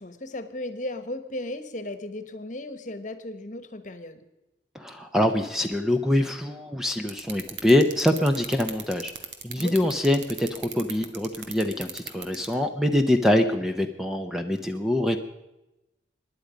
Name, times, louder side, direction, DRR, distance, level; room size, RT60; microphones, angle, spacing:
voice 1, 0.0-4.2 9.6-9.9, left 1 dB, 45° left, 11 dB, 1.2 m, -36 dB
voice 2, 4.7-9.1 9.4-15.2, left 1 dB, 5° right, 6 dB, 0.7 m, -24 dB
sound 1, 7.1-12.5, right 8 dB, 80° right, 1.7 m, -36 dB
24.0 x 10.5 x 5.1 m, 0.98 s
head